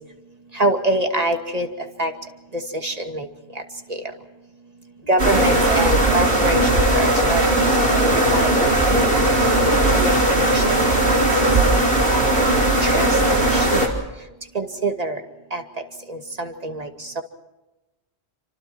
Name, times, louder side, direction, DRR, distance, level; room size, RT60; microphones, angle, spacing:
voice 1, 0.5-1.7 2.0-2.1 2.5-3.3 5.1-7.7 8.0-9.3 9.9-10.2 10.5-11.2 12.1-13.1 13.5-13.9 14.5-15.2 15.5-15.6 16.1-16.9 17.2-17.3, right 1 dB, 35° right, 4 dB, 2.5 m, -25 dB
sound 1, 5.2-13.9, right 1 dB, 55° right, 4.4 m, -18 dB
29.5 x 25.5 x 4.5 m, 1.1 s
omnidirectional pair, 1.1 m